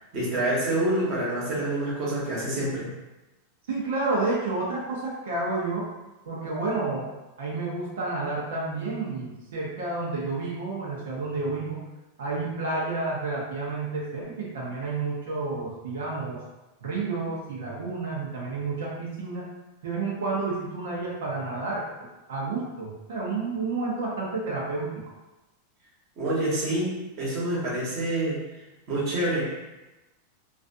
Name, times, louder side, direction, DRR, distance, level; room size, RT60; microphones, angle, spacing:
voice 1, 0.0-2.9 26.2-28.4 28.9-29.8, right 1 dB, 35° right, -7 dB, 1.1 m, -27 dB
voice 2, 3.7-5.8 6.3-7.1 7.4-11.8 12.2-16.4 16.8-19.5 19.8-21.8 22.3-25.0, right 3 dB, 90° right, -4 dB, 0.7 m, -30 dB
2.4 x 2.2 x 2.5 m, 1.0 s
supercardioid pair, 155°, 0 cm